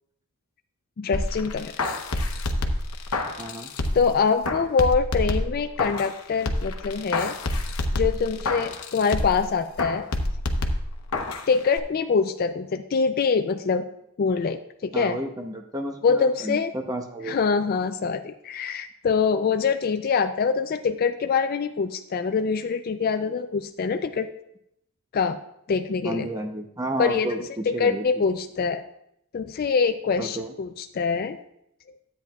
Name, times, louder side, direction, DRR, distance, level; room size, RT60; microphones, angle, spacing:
voice 1, 1.0-1.7 3.9-7.4 8.0-10.1 11.5-13.8 14.2-15.2 16.0-16.7 17.2-24.3 25.1-25.4 25.7-26.3 27.0-28.8 29.3-31.4, left 5 dB, 40° left, 8 dB, 0.3 m, -24 dB
sound 1, 1.1-4.1 4.4-6.2 6.5-9.4 9.8-11.5 11.8-11.9, left 2 dB, 80° left, 0.9 m, -28 dB
voice 2, 3.4-3.7 14.9-17.4 26.0-28.0 30.2-30.5, right 1 dB, 15° right, 4 dB, 0.6 m, -32 dB
12.5 x 8.9 x 2.3 m, 0.77 s
head